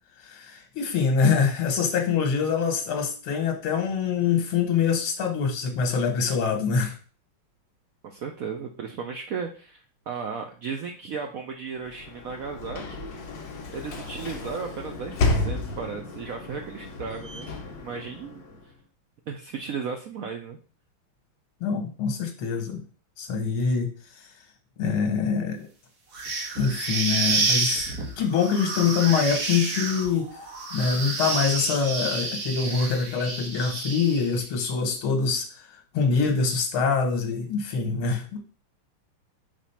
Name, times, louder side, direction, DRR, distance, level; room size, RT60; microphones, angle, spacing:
voice 1, 0.2-6.9 21.6-22.8 23.2-23.9 24.8-25.6 26.6-27.9 28.2-30.3 30.7-35.5 35.9-38.4, left 5 dB, 85° left, 3 dB, 2.0 m, -24 dB
voice 2, 8.0-13.1 13.7-18.4 19.3-20.6, right 5 dB, 85° right, 4 dB, 0.7 m, -35 dB
Sliding door / Slam, 11.8-18.8, left 2 dB, 65° left, 1.7 m, -32 dB
sound 1, 26.1-34.4, right 3 dB, 50° right, 1.7 m, -29 dB
5.1 x 3.4 x 5.6 m, 0.38 s
omnidirectional pair, 2.3 m